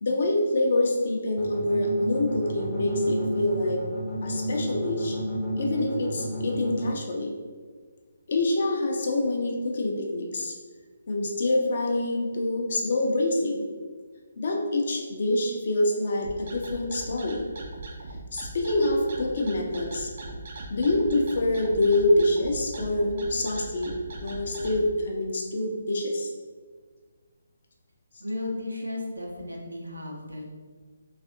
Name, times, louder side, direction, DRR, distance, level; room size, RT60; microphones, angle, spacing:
voice 1, 0.0-3.8 4.2-5.2 5.6-7.3 8.3-10.5 11.1-13.6 14.4-17.5 18.3-20.1 20.7-23.9 24.2-26.3, left 2 dB, 50° left, 1 dB, 0.5 m, -26 dB
sound 1, 1.4-6.9, equal, ahead, 0.6 m, -33 dB
sound 2, 16.2-24.8, right 2 dB, 45° right, 0.4 m, -39 dB
voice 2, 28.2-30.5, left 2 dB, 85° right, -1 dB, 0.7 m, -34 dB
3.3 x 2.4 x 2.6 m, 1.5 s
figure-of-eight pair, 140°, 0 cm